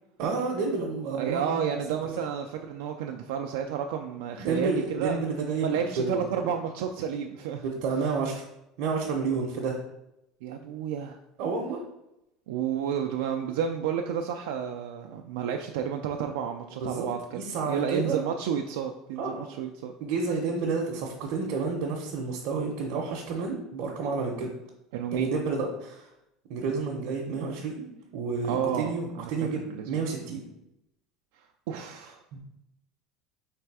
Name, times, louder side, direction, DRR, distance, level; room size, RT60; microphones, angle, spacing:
voice 1, 0.2-1.8 2.1-2.2 4.3-6.5 7.6-8.5 8.8-9.8 11.4-11.8 16.7-18.2 19.2-19.5 20.0-24.5 25.1-26.1 26.5-27.9 28.1-30.4 32.3-32.4, right 4 dB, 65° right, -1 dB, 0.7 m, -30 dB
voice 2, 1.2-5.2 5.6-7.6 10.4-11.2 12.5-19.9 24.9-25.3 28.5-28.9 29.2-29.3 29.6-30.0 31.7-32.2, right 8 dB, 90° right, 3 dB, 0.3 m, -31 dB
3.4 x 3.3 x 4.6 m, 0.86 s
cardioid pair, 145°, 0 cm